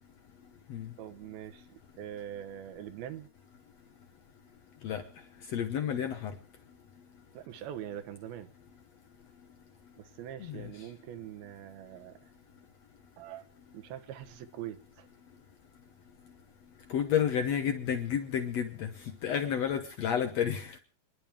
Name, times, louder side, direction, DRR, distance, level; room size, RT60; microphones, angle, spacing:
voice 1, 1.0-3.3 7.3-8.5 10.0-12.2 13.2-13.4 13.7-15.1, right 11 dB, 75° right, 2.9 m, -43 dB
voice 2, 5.5-6.3 10.4-10.6 16.9-18.9 19.2-20.8, left 8 dB, 75° left, 1.5 m, -30 dB
28.0 x 11.0 x 3.5 m
omnidirectional pair, 4.6 m